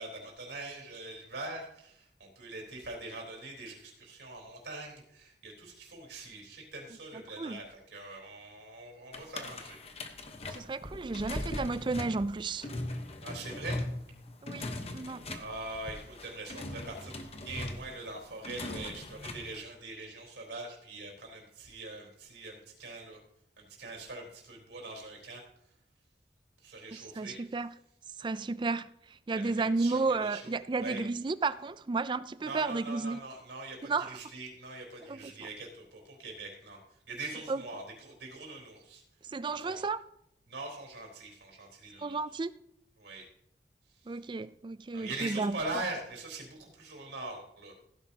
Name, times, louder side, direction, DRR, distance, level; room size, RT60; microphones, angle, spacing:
voice 1, 0.0-9.8 13.2-13.8 15.3-17.2 17.4-23.2 23.6-25.4 26.6-27.4 29.3-31.0 32.5-36.8 37.1-39.0 39.5-39.8 40.5-42.2 43.0-43.3 44.9-47.7, right 2 dB, 80° right, 3.8 m, -42 dB
sound 1, 9.1-19.6, left 1 dB, 35° left, 1.0 m, -40 dB
voice 2, 10.5-12.7 14.4-15.4 26.9-27.7 28.2-33.2 33.8-34.2 35.1-35.5 37.5-37.6 39.3-40.0 42.0-42.5 44.1-45.6, right 3 dB, 25° right, 0.3 m, -33 dB
15.5 x 10.5 x 2.8 m
head